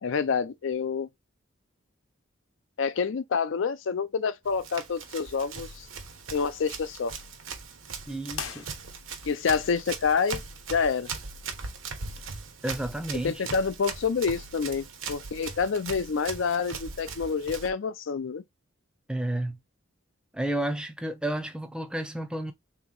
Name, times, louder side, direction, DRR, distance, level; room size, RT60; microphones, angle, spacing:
voice 1, 0.0-1.1 2.8-5.7 6.3-7.1 9.3-10.4 10.7-11.1 13.2-18.4, left 5 dB, 70° left, 0.5 m, -27 dB
Run, 4.5-17.7, right 4 dB, 75° right, 1.0 m, -40 dB
voice 2, 8.1-8.7 12.6-13.4 19.1-19.6 20.3-22.5, right 1 dB, 5° right, 0.4 m, -31 dB
sound 1, 8.3-9.4, left 7 dB, 85° left, 0.9 m, -39 dB
3.5 x 3.0 x 3.8 m
head